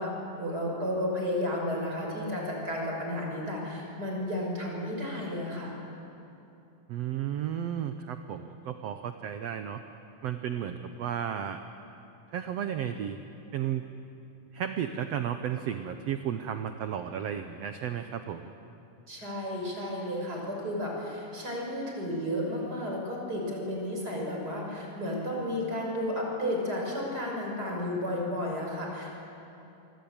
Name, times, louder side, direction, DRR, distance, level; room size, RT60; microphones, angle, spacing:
voice 1, 0.0-5.7 19.1-29.2, left 1 dB, 25° right, -1 dB, 6.4 m, -32 dB
voice 2, 6.9-9.8 10.2-11.6 12.3-13.2 13.5-13.9 14.5-18.5, right 9 dB, 70° right, 7 dB, 1.6 m, -33 dB
26.0 x 24.0 x 8.8 m, 2.8 s
omnidirectional pair, 4.0 m